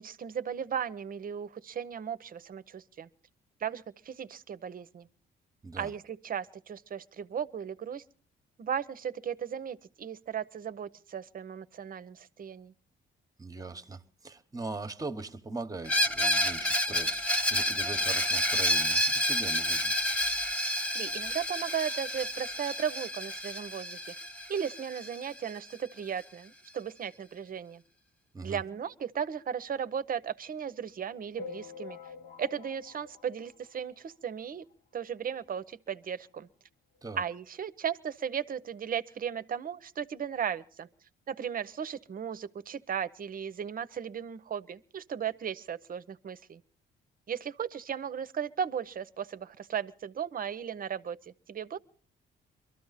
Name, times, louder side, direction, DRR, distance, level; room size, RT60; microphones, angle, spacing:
voice 1, 0.0-3.1 3.6-5.1 5.8-8.0 8.6-12.7 20.9-24.0 24.5-27.8 28.4-32.0 32.4-34.7 34.9-36.5 37.2-40.9 41.3-46.6 47.3-51.2 51.5-51.8, right 8 dB, 45° right, 0.7 m, -36 dB
voice 2, 13.4-19.9 28.3-28.6 37.0-37.2, right 3 dB, 20° right, 1.0 m, -41 dB
Screech, 15.9-25.5, left 1 dB, 5° left, 1.0 m, -29 dB
sound 1, 31.4-34.2 34.7-34.8 35.0-35.1 35.4-35.5 36.4-36.5 36.9-37.0, left 5 dB, 55° left, 1.0 m, -46 dB
23.0 x 13.0 x 4.1 m
cardioid pair, 90°, 20 cm